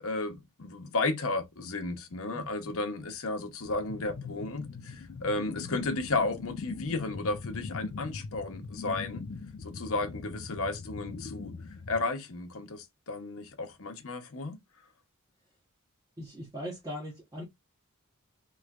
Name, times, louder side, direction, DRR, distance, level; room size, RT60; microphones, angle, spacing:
voice 1, 0.0-9.2 9.6-11.5 11.9-14.6, left 3 dB, 65° left, 0.9 m, -33 dB
sound 1, 3.6-12.1, left 4 dB, 50° left, 0.4 m, -41 dB
voice 2, 16.2-17.4, equal, 15° right, 1.1 m, -39 dB
3.1 x 3.0 x 2.4 m
head